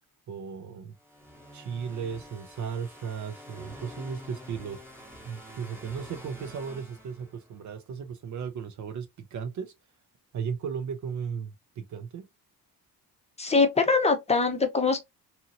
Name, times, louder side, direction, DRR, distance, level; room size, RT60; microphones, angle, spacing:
voice 1, 0.3-0.9 1.5-4.8 5.3-9.7 10.3-12.3, right 6 dB, 50° right, 0.5 m, -36 dB
sound 1, 1.0-7.7, equal, 5° right, 0.9 m, -47 dB
voice 2, 13.4-15.0, left 4 dB, 15° left, 0.6 m, -23 dB
2.8 x 2.7 x 2.6 m
cardioid pair, 120°, 37 cm